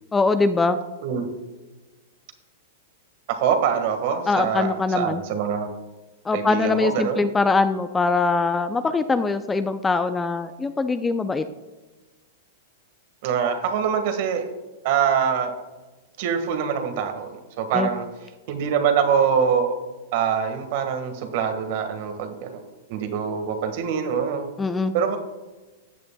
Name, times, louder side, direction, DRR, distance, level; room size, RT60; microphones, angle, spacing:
voice 1, 0.1-0.8 4.3-5.2 6.3-11.4 17.7-17.9 24.6-24.9, left 3 dB, 15° left, 11 dB, 0.5 m, -22 dB
voice 2, 3.3-5.7 6.3-7.3 13.2-14.4 14.8-15.5 16.2-18.1 18.5-19.8 20.1-22.6 22.9-24.4 24.9-25.2, right 7 dB, 55° right, 6 dB, 1.7 m, -24 dB
14.0 x 8.5 x 2.3 m, 1.2 s
hypercardioid pair, 120°, 0 cm